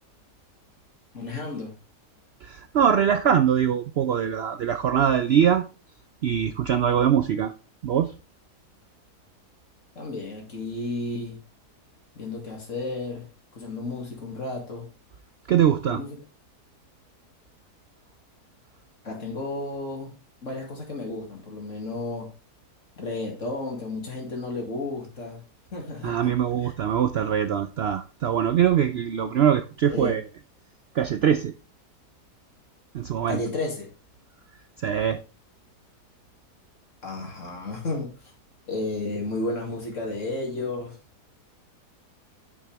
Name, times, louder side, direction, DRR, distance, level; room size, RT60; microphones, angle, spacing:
voice 1, 1.1-1.7 10.0-11.4 12.1-13.3 13.5-14.9 15.9-16.2 19.0-20.1 20.4-22.3 23.0-25.4 25.7-26.3 26.6-26.7 29.9-30.2 33.3-33.9 37.0-38.1 38.7-41.0, left 2 dB, 50° left, 0 dB, 2.8 m, -32 dB
voice 2, 2.4-5.6 6.2-7.5 7.8-8.1 15.5-16.0 26.0-30.2 30.9-31.5 32.9-33.4 34.8-35.2, right 9 dB, 85° right, 10 dB, 0.5 m, -22 dB
9.0 x 6.3 x 3.4 m, 0.32 s
omnidirectional pair, 1.7 m